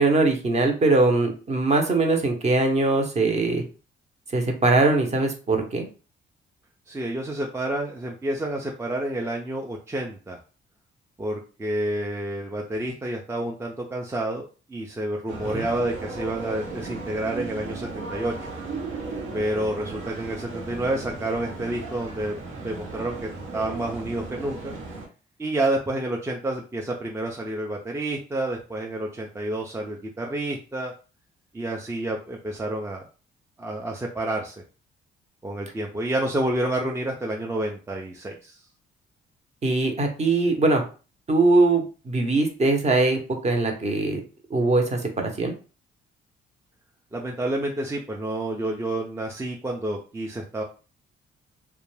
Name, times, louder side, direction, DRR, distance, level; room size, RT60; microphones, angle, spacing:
voice 1, 0.0-3.6 4.3-5.9 15.5-15.6 39.6-40.8 41.3-44.2 44.5-45.5, right 3 dB, 35° right, 3 dB, 0.8 m, -21 dB
voice 2, 6.9-10.4 11.2-18.5 19.3-24.7 25.4-30.9 31.5-33.1 33.6-34.6 35.4-38.6 47.1-50.6, right 1 dB, 15° right, 0 dB, 0.4 m, -29 dB
sound 1, 15.3-25.1, right 3 dB, 80° right, 0.8 m, -36 dB
2.4 x 2.2 x 3.1 m, 0.35 s
cardioid pair, 90°, 20 cm